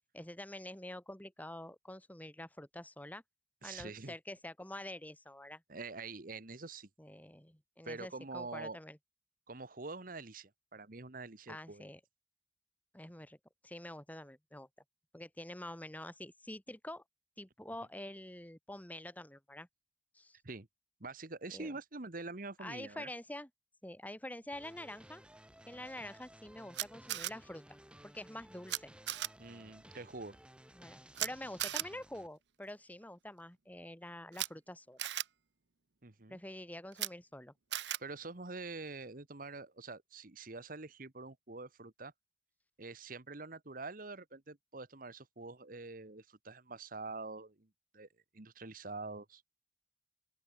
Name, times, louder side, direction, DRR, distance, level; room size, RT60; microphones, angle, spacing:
voice 1, 0.1-3.2 3.6-5.6 7.0-9.0 11.5-12.0 12.9-13.4 13.6-14.7 15.1-17.0 17.4-19.7 20.1-20.4 21.5-21.7 22.6-23.5 23.8-25.2 25.7-27.8 28.0-28.9 30.7-35.0 36.3-37.5, left 1 dB, 10° left, 1.9 m, -47 dB
voice 2, 3.6-4.1 5.7-6.9 7.8-8.8 9.5-11.9 20.4-20.7 21.0-23.1 29.4-30.4 36.0-36.4 38.0-42.1 42.8-47.7 47.9-48.1 48.3-49.4, right 3 dB, 50° right, 1.5 m, -45 dB
sound 1, 24.5-32.3, right 1 dB, 5° right, 5.0 m, -57 dB
Camera, 26.7-27.3 28.7-28.8 29.1-29.3 31.2-31.3 31.6-31.9 34.3-34.5 35.0-35.2 36.9-37.1 37.7-38.0, right 13 dB, 90° right, 1.2 m, -36 dB
open air
head